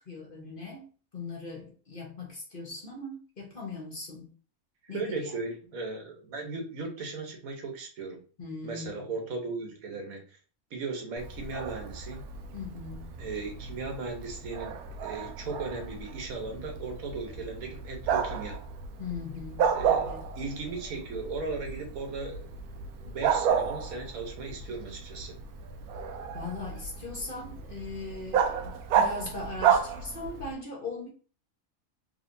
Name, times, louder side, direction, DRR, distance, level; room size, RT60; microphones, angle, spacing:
voice 1, 0.0-4.3 4.9-5.4 8.4-9.0 12.5-13.1 19.0-20.3 26.3-31.1, left 3 dB, 40° left, -1 dB, 1.2 m, -39 dB
voice 2, 4.9-8.2 8.6-10.4 10.7-12.2 13.2-18.6 19.7-20.1 20.3-22.5 23.0-25.3, right 3 dB, 75° right, 3 dB, 1.3 m, -37 dB
Bark, 11.2-30.5, right 7 dB, 90° right, 1.1 m, -32 dB
3.6 x 3.3 x 2.6 m, 0.38 s
omnidirectional pair, 1.5 m